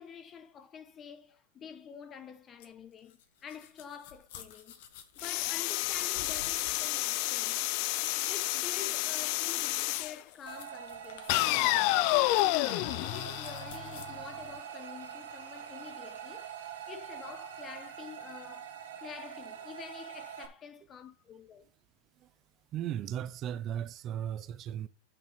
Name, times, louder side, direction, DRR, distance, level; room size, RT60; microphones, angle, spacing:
voice 1, 0.0-4.8 5.1-7.7 8.3-16.5 16.9-21.6, left 7 dB, 25° left, 1.1 m, -48 dB
sound 1, 2.6-14.0, left 8 dB, 65° left, 1.8 m, -53 dB
sound 2, 5.2-10.2 11.3-14.2, left 19 dB, 50° left, 0.4 m, -30 dB
sound 3, 10.5-20.5, right 9 dB, 80° right, 1.9 m, -44 dB
voice 2, 22.7-24.9, right 10 dB, 30° right, 0.6 m, -36 dB
9.4 x 5.5 x 5.2 m
supercardioid pair, 145°, 0 cm